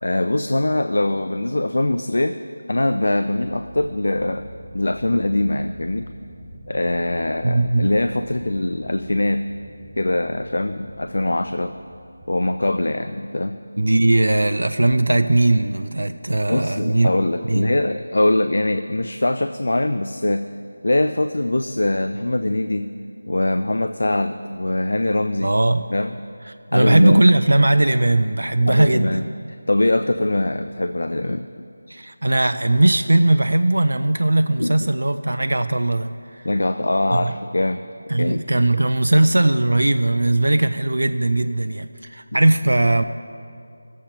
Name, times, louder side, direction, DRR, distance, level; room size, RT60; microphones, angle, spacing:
voice 1, 0.0-2.4 2.7-4.5 4.7-6.1 6.7-9.5 10.0-11.7 12.3-13.6 16.5-20.5 20.8-22.9 23.3-25.5 25.9-26.1 26.7-27.2 28.6-29.2 29.5-31.6 34.6-34.7 36.4-37.8 38.2-38.4, left 1 dB, 75° left, 8 dB, 0.3 m, -22 dB
sound 1, 3.4-13.5, equal, ahead, 0.5 m, -44 dB
voice 2, 7.4-7.9 13.8-17.1 17.5-17.7 25.4-25.8 26.5-29.2 31.9-36.4 37.1-37.3 38.1-43.0, right 2 dB, 85° right, 9 dB, 0.4 m, -19 dB
16.0 x 7.3 x 2.9 m, 2.4 s
figure-of-eight pair, 175°, 0 cm